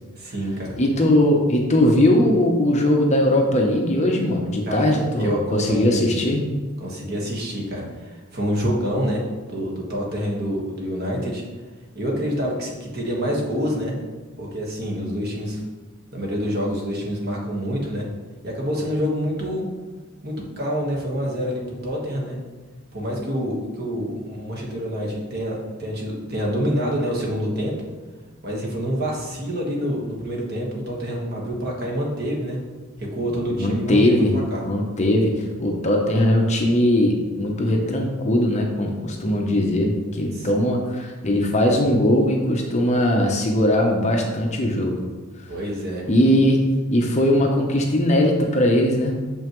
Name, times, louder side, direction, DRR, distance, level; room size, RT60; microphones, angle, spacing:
voice 1, 0.2-0.7 4.6-6.1 6.8-9.2 9.5-11.4 11.9-13.9 14.4-15.6 16.1-18.1 18.4-19.6 20.2-22.4 22.9-27.7 28.4-32.6 33.0-34.7 40.3-40.5 45.5-46.0, equal, 45° right, -2 dB, 1.4 m, -27 dB
voice 2, 0.8-6.4 33.6-34.3 34.6-35.3 35.6-45.0 46.1-46.6 46.9-49.1, left 1 dB, 30° left, 1 dB, 0.7 m, -20 dB
6.6 x 5.5 x 3.1 m, 1.3 s
head